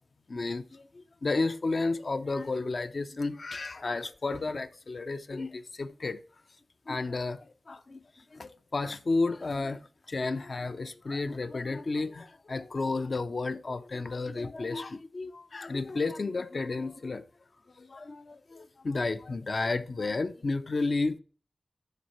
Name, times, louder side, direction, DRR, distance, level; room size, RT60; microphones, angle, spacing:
voice 1, 0.3-6.2 6.9-9.8 10.1-17.2 17.8-21.2, left 3 dB, 55° left, 0.5 m, -32 dB
11.5 x 4.3 x 3.0 m
wide cardioid pair, 85°, 0 cm